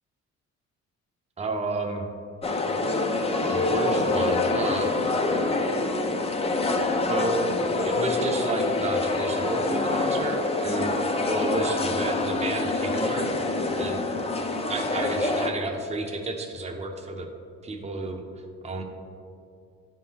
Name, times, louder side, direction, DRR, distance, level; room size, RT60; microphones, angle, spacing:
voice 1, 1.4-2.1 3.5-4.9 5.3-5.4 7.1-7.5 7.9-13.3 13.7-14.1 14.7-17.3 17.6-18.8, right 2 dB, 20° right, 3 dB, 0.7 m, -31 dB
sound 1, 2.4-15.5, left 2 dB, 20° left, 0.5 m, -26 dB
10.0 x 3.7 x 2.8 m, 2.5 s
cardioid pair, 90°, 30 cm